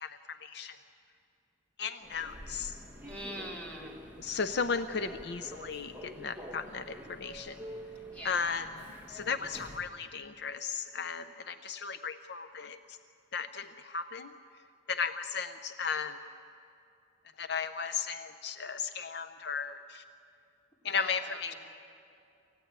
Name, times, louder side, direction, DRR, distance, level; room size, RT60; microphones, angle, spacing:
voice 1, 0.0-0.8 1.8-2.7 4.2-7.6 8.2-8.6 9.1-12.8 13.3-14.3 14.9-16.1 17.4-20.0 20.8-21.5, left 5 dB, 65° left, 10 dB, 0.6 m, -35 dB
Human voice / Subway metro underground, 2.0-10.0, equal, 10° right, 1.7 m, -48 dB
voice 2, 3.0-4.0 8.1-8.4 20.8-21.6, equal, 10° left, -2 dB, 3.2 m, -43 dB
27.5 x 15.0 x 8.9 m, 2.5 s
head